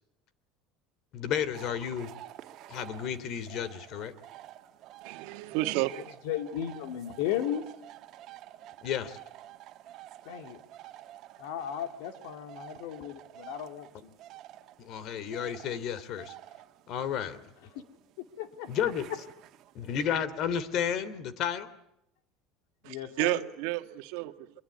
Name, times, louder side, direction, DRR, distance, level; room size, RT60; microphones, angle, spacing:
voice 1, 1.1-2.1 2.7-4.1 8.8-9.2 14.8-16.3 16.9-17.4 18.7-19.1 19.7-21.7, left 8 dB, 55° left, 2.9 m, -32 dB
sound 1, 1.5-20.0, right 13 dB, 55° right, 1.9 m, -50 dB
voice 2, 5.0-6.1 22.8-24.3, right 18 dB, 75° right, 1.6 m, -31 dB
voice 3, 6.2-7.6 10.2-10.6 11.4-14.1 18.4-18.7 22.8-23.4, left 10 dB, 80° left, 2.7 m, -35 dB
25.0 x 22.5 x 9.6 m
supercardioid pair, 120°, 0 cm